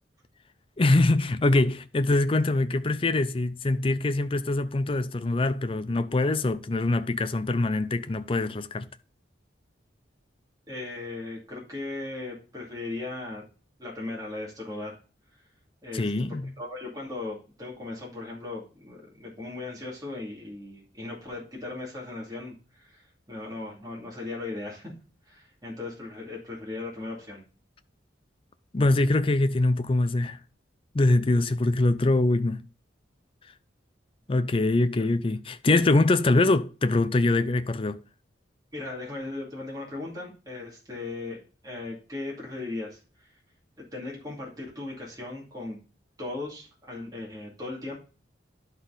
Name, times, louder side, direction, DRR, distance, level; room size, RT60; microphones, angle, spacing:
voice 1, 0.8-8.9 15.9-16.5 28.7-30.4 30.9-32.7 34.3-38.0, left 2 dB, 30° left, 0.5 m, -23 dB
voice 2, 10.7-13.4 13.8-15.0 15.8-24.9 25.3-27.5 38.7-43.3 43.9-45.8 46.2-48.0, left 2 dB, 20° right, 2.4 m, -37 dB
11.5 x 4.1 x 3.9 m
head